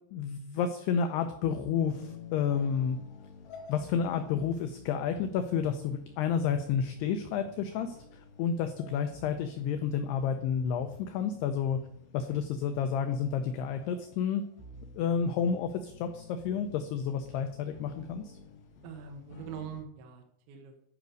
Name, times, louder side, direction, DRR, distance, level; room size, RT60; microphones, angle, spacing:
voice 1, 0.1-3.0 3.7-11.8 12.1-14.5 15.0-18.3, left 7 dB, 85° left, 8 dB, 2.4 m, -30 dB
sound 1, 1.8-19.8, left 5 dB, 65° left, 3.0 m, -51 dB
voice 2, 18.8-20.8, right 7 dB, 75° right, 3 dB, 3.4 m, -43 dB
11.0 x 5.2 x 6.3 m, 0.72 s
omnidirectional pair, 5.4 m